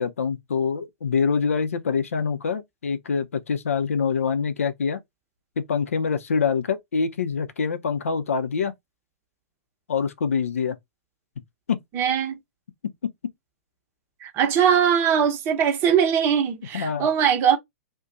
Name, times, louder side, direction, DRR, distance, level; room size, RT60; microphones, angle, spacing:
voice 1, 0.0-5.0 5.6-8.7 9.9-10.8 11.7-11.8 16.7-17.1, left 5 dB, 70° left, 0.5 m, -25 dB
voice 2, 11.9-12.4 14.2-17.6, right 8 dB, 30° right, 0.8 m, -21 dB
2.5 x 2.2 x 3.8 m
figure-of-eight pair, 105°, 8 cm